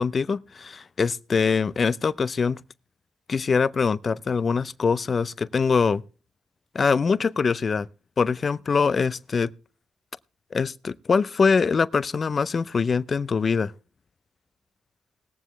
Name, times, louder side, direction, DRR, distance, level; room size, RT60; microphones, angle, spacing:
voice 1, 0.0-2.6 3.3-6.0 6.7-7.9 8.2-9.5 10.5-13.7, left 5 dB, 50° left, 0.5 m, -23 dB
20.0 x 7.4 x 3.3 m
cardioid pair, 60°, 0 cm